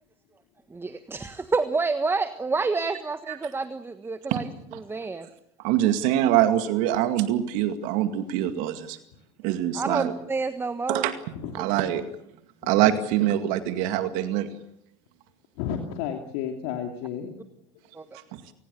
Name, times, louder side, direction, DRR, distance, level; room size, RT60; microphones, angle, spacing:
voice 1, 0.7-5.3 9.7-11.1 17.9-18.0, right 4 dB, 15° right, 11 dB, 1.4 m, -28 dB
voice 2, 5.6-9.0 9.4-10.1 10.9-11.1 11.5-12.0 12.6-14.5 18.3-18.4, right 12 dB, 65° right, 9 dB, 2.1 m, -24 dB
voice 3, 11.3-11.9 12.6-12.9 15.6-17.3, left 8 dB, 70° left, 4 dB, 2.8 m, -33 dB
29.0 x 19.5 x 7.0 m, 0.75 s
hypercardioid pair, 85°, 14 cm